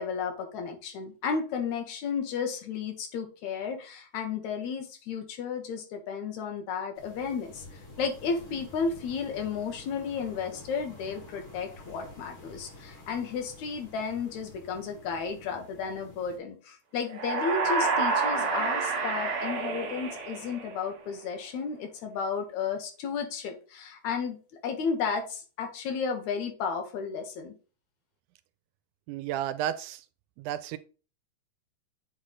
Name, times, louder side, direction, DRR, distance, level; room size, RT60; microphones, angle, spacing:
voice 1, 0.0-24.4 24.6-27.5, left 5 dB, 75° left, 2.4 m, -33 dB
sound 1, 6.9-16.4, left 2 dB, 45° left, 2.6 m, -49 dB
sound 2, 17.1-21.0, right 4 dB, 60° right, 1.2 m, -29 dB
voice 2, 29.1-30.0 30.4-30.8, right 11 dB, 90° right, 2.0 m, -32 dB
7.9 x 3.2 x 3.8 m
omnidirectional pair, 3.4 m